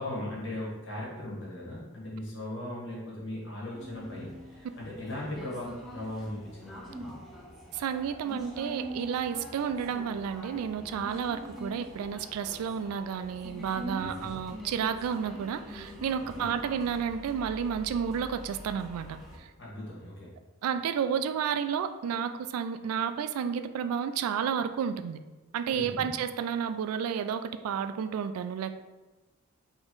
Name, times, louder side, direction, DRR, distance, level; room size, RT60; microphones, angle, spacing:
voice 1, 0.0-7.1 14.0-14.3 16.2-16.5 19.6-20.3 25.7-26.1, left 1 dB, 55° left, -5 dB, 1.5 m, -38 dB
sound 1, 3.7-19.4, equal, ahead, 0.7 m, -44 dB
voice 2, 7.7-19.5 20.6-25.2 25.5-28.8, right 7 dB, 80° right, 10 dB, 0.3 m, -31 dB
3.8 x 3.0 x 3.8 m, 1.2 s
head